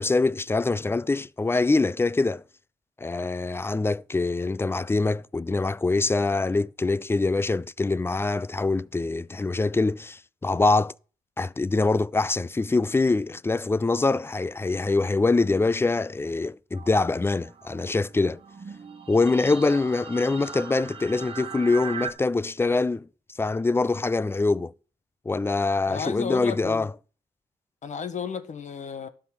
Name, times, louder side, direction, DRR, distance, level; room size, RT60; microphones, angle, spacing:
voice 1, 0.0-2.4 3.0-10.9 11.4-18.4 19.1-23.1 23.4-24.7 25.3-26.9, left 3 dB, 15° left, 0.4 m, -24 dB
sound 1, 16.7-22.1, right 5 dB, 40° right, 1.6 m, -39 dB
voice 2, 25.9-26.9 27.8-29.1, left 6 dB, 55° left, 1.5 m, -33 dB
12.5 x 5.6 x 7.2 m
supercardioid pair, 65°, 15 cm